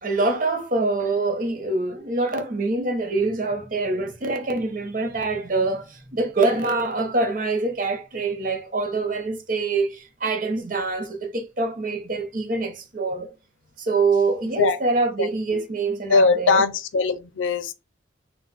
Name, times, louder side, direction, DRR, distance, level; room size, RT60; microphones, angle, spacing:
voice 1, 0.0-13.3 13.8-16.6, right 3 dB, 45° right, 0.7 m, -25 dB
voice 2, 15.2-15.6 16.1-17.7, left 4 dB, 85° left, 0.5 m, -21 dB
3.9 x 2.2 x 4.0 m
head